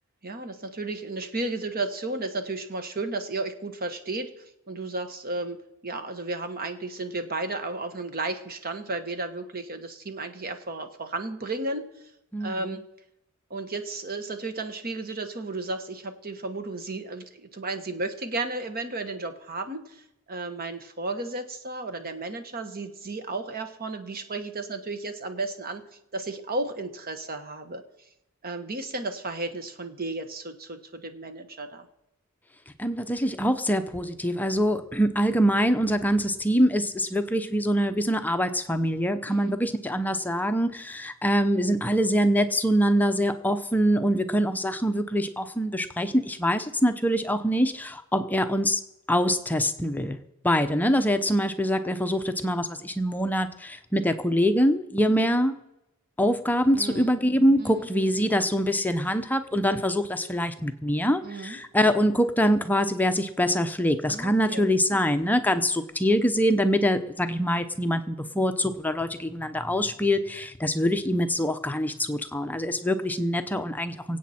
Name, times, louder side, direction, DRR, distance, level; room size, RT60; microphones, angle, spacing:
voice 1, 0.2-4.3 4.7-11.9 12.4-12.8 13.5-19.8 20.3-25.8 26.1-27.8 28.4-31.9 39.3-39.6 56.7-57.1 57.6-57.9 61.2-61.6 64.1-64.6, right 2 dB, 45° right, 8 dB, 1.3 m, -33 dB
voice 2, 12.3-12.8 32.8-48.8 49.1-50.2 50.4-55.5 56.2-74.2, equal, 10° left, 8 dB, 0.7 m, -24 dB
24.0 x 8.4 x 4.3 m, 0.86 s
head